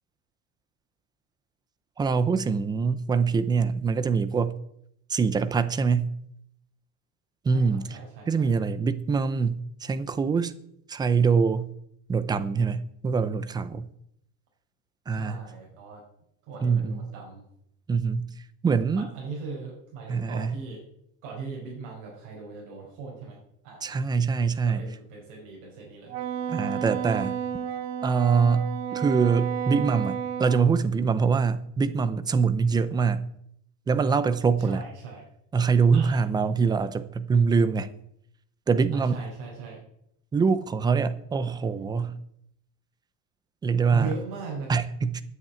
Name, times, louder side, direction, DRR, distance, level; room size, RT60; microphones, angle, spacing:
voice 1, 2.0-4.5 5.1-6.1 7.4-8.0 8.3-10.5 10.9-11.7 12.1-13.9 15.1-15.4 16.6-17.1 17.9-18.3 18.6-19.1 20.1-20.6 23.8-24.8 26.5-27.4 28.0-33.2 33.9-34.8 35.5-37.9 38.7-39.2 40.3-42.2 43.6-44.1 44.7-45.2, right 5 dB, 10° right, 0.5 m, -24 dB
voice 2, 7.5-8.5 15.1-16.0 16.5-17.5 18.9-20.8 21.2-23.4 23.6-24.1 24.7-26.2 34.6-35.2 35.9-36.2 38.9-39.8 43.9-44.7, right 5 dB, 55° right, 5.6 m, -39 dB
Wind instrument woodwind instrument, 26.1-30.6, right 9 dB, 75° right, 2.3 m, -31 dB
9.5 x 8.8 x 9.1 m
cardioid pair, 165°, 38 cm